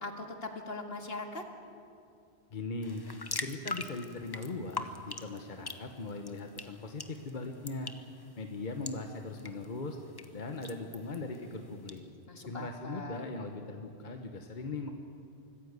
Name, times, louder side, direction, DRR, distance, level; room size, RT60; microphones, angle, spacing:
voice 1, 0.0-1.4 12.3-13.3, left 2 dB, 65° left, 3 dB, 2.2 m, -40 dB
voice 2, 2.5-3.1 3.4-7.9 8.4-10.0 10.3-12.0 12.4-14.9, left 3 dB, 45° left, 4 dB, 1.3 m, -39 dB
sound 1, 2.8-12.0, left 3 dB, 25° left, 0.8 m, -44 dB
24.5 x 14.5 x 8.2 m, 2.4 s
omnidirectional pair, 1.1 m